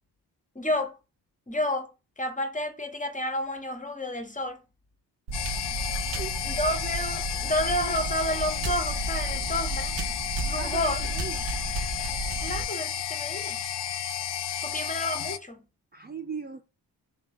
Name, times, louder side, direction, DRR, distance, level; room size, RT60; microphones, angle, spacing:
voice 1, 0.5-0.9 1.5-1.9 2.2-4.6 6.4-9.9 10.4-11.0 12.4-13.6 14.6-15.6, left 1 dB, 15° left, 0.9 m, -30 dB
sound 1, 5.3-15.4, left 10 dB, 65° left, 0.6 m, -32 dB
sound 2, 5.3-12.6, right 3 dB, 75° right, 0.8 m, -33 dB
voice 2, 6.2-6.6 10.5-11.4 15.9-16.6, right 6 dB, 25° right, 0.4 m, -38 dB
3.3 x 2.8 x 3.7 m
supercardioid pair, 40°, 45 cm